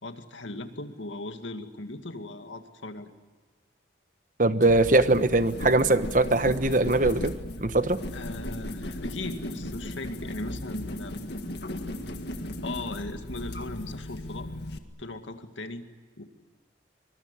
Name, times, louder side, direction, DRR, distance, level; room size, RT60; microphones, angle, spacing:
voice 1, 0.0-3.1 8.1-11.3 12.6-14.5 15.0-15.8 16.2-16.3, left 2 dB, 85° left, 7 dB, 2.2 m, -38 dB
voice 2, 4.4-7.3 7.6-8.0, right 2 dB, 45° right, 11 dB, 1.1 m, -21 dB
sound 1, 4.6-14.8, left 1 dB, 60° left, 1.9 m, -36 dB
24.5 x 22.0 x 9.7 m, 1.4 s
head